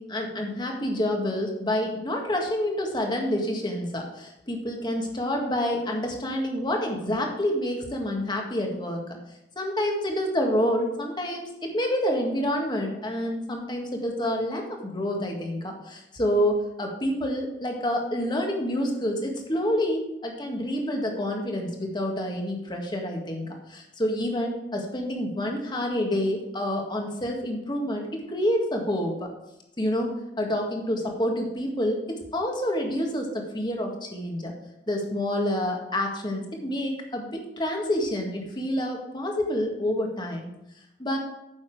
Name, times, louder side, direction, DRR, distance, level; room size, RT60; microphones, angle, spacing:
voice 1, 0.0-9.2 9.6-29.3 29.8-30.1 30.4-34.5 34.9-40.5 41.0-41.2, left 1 dB, 25° left, 2 dB, 1.8 m, -28 dB
9.7 x 7.1 x 4.9 m, 0.84 s
head